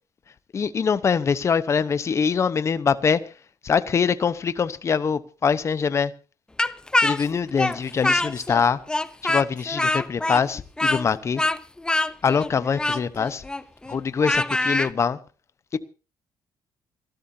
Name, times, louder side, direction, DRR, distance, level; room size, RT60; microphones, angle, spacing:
voice 1, 0.5-3.2 3.6-6.1 7.0-8.8 9.2-11.4 12.2-13.4 13.9-15.2 15.7-15.8, left 6 dB, 35° left, 0.9 m, -23 dB
Speech, 6.6-8.6 8.9-14.9, left 2 dB, 10° left, 0.7 m, -24 dB
27.5 x 13.0 x 2.8 m
cardioid pair, 115°, 8 cm